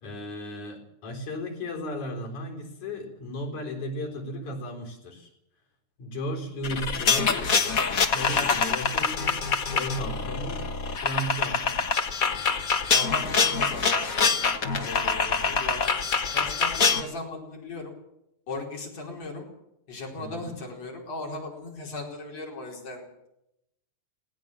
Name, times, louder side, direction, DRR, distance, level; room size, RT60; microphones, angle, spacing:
voice 1, 0.0-5.3 6.0-7.5 8.0-9.4 9.7-10.6 11.0-11.8 20.2-20.5, equal, 85° left, 2 dB, 5.5 m, -35 dB
sound 1, 6.6-17.0, left 5 dB, 40° left, 1.3 m, -25 dB
voice 2, 12.9-14.4 14.7-17.9 18.5-19.5 19.9-23.3, left 2 dB, 60° left, 0 dB, 5.9 m, -38 dB
19.5 x 18.5 x 7.5 m, 0.82 s
omnidirectional pair, 3.4 m